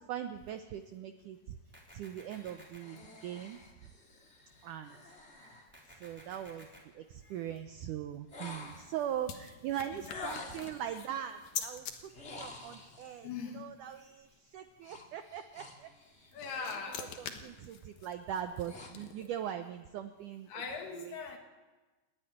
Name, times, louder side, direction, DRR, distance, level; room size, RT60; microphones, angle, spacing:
voice 1, 0.0-1.6 1.9-3.6 4.6-5.0 6.0-6.7 6.9-15.9 16.5-16.7 17.0-20.5 20.9-21.2, right 10 dB, 80° right, 8 dB, 1.8 m, -41 dB
sound 1, 1.7-2.8 5.7-6.8, equal, 5° right, 3.4 m, -55 dB
sound 2, 2.3-6.5 8.3-9.1 10.0-10.9 12.1-13.2 14.8-16.9 17.3-17.6 18.2-19.3, left 3 dB, 25° left, 1.7 m, -50 dB
sound 3, 8.3-12.0 16.1-19.5, left 8 dB, 60° left, 2.1 m, -45 dB
voice 2, 9.9-10.6 13.2-13.7 16.3-17.4 20.5-21.4, left 5 dB, 80° left, 3 dB, 4.3 m, -41 dB
28.0 x 9.6 x 10.0 m, 1.2 s
omnidirectional pair, 4.6 m